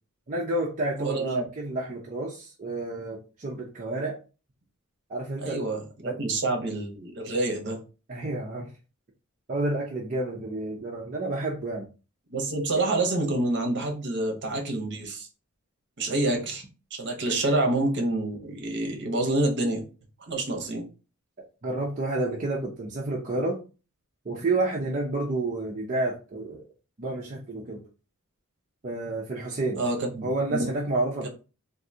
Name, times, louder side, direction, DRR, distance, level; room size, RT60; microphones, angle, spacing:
voice 1, 0.3-4.1 5.1-6.2 8.1-8.7 9.5-11.9 21.6-23.6 24.2-26.6 27.0-27.8 28.8-29.8 30.2-31.3, right 2 dB, 35° right, -3 dB, 0.6 m, -30 dB
voice 2, 1.0-1.4 5.4-7.8 12.3-15.3 16.0-16.6 16.9-19.8 20.3-20.8 29.8-30.7, right 2 dB, 55° right, 2 dB, 0.9 m, -27 dB
3.6 x 2.6 x 2.7 m, 0.33 s
head